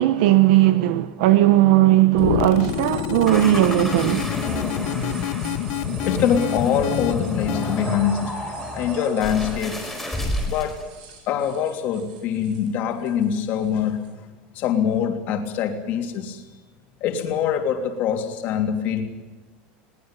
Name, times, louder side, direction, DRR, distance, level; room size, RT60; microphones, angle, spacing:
voice 1, 0.0-4.3, right 15 dB, 65° right, 1.0 m, -17 dB
sound 1, 2.1-7.9, left 16 dB, 55° left, 1.0 m, -28 dB
sound 2, 2.2-14.1, right 7 dB, 80° right, 6.4 m, -46 dB
sound 3, 3.3-10.8, left 1 dB, 5° left, 4.8 m, -30 dB
voice 2, 6.0-9.9 10.5-10.8 11.3-14.2 14.5-16.5 17.0-19.0, left 8 dB, 35° left, 3.1 m, -24 dB
22.0 x 19.0 x 9.1 m
cardioid pair, 180°, 5 cm